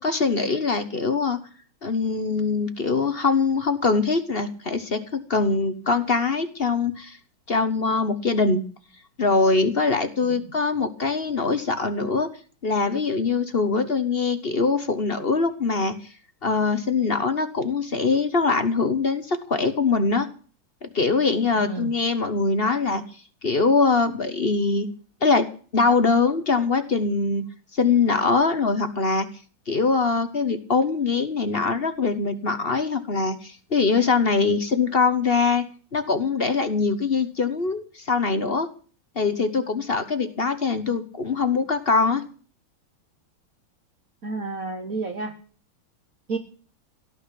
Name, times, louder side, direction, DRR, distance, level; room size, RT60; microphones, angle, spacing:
voice 1, 0.0-1.4 1.8-5.0 5.3-7.2 7.5-8.6 9.2-12.3 12.6-15.9 16.4-20.3 20.8-23.0 23.4-24.9 25.2-25.5 25.7-27.4 27.7-29.3 29.7-38.7 39.1-42.2, left 4 dB, 35° left, 10 dB, 1.1 m, -23 dB
voice 2, 21.6-21.9 44.2-45.3 46.3-46.4, right 3 dB, 45° right, 6 dB, 1.7 m, -31 dB
17.0 x 6.4 x 9.9 m, 0.41 s
omnidirectional pair, 2.4 m